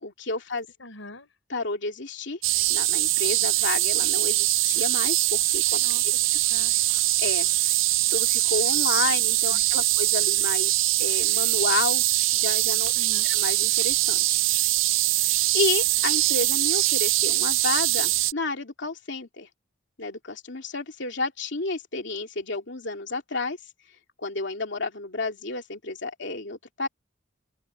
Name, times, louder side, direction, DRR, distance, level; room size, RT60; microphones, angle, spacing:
voice 1, 0.0-0.7 1.5-2.4 2.7-5.8 7.2-7.5 8.1-12.1 12.3-12.9 13.3-14.4 15.5-19.5 20.0-23.6 24.2-26.9, left 3 dB, 65° left, 2.9 m, -31 dB
voice 2, 0.8-1.3 5.7-6.0 6.5-6.7 9.5-9.9 12.9-13.3, left 1 dB, 85° left, 4.6 m, -44 dB
sound 1, 2.4-18.3, right 16 dB, 85° right, 0.5 m, -23 dB
head